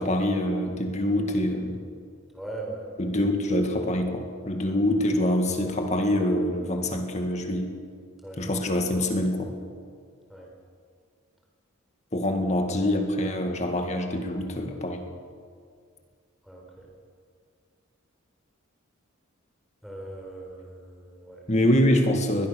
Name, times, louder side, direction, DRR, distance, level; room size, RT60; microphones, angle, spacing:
voice 1, 0.0-1.8 3.0-7.7 8.4-9.5 12.1-15.1 21.5-22.5, left 1 dB, 30° left, 4 dB, 2.0 m, -25 dB
voice 2, 2.3-2.9 8.2-8.4 10.3-10.5 16.4-16.9 19.8-21.4, right 2 dB, ahead, -1 dB, 4.4 m, -39 dB
22.0 x 21.0 x 6.6 m, 2.2 s
head